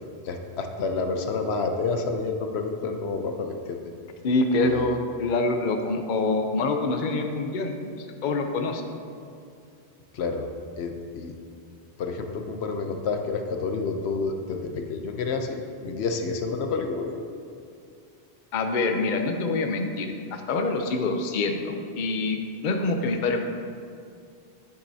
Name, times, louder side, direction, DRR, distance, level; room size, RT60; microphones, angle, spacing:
voice 1, 0.2-3.8 4.6-4.9 10.1-10.5 10.8-11.4 12.0-17.1, left 4 dB, 75° left, 5 dB, 0.9 m, -29 dB
voice 2, 4.2-8.8 18.5-23.4, left 3 dB, 55° left, 5 dB, 0.7 m, -26 dB
9.1 x 8.5 x 2.7 m, 2.4 s
omnidirectional pair, 1.1 m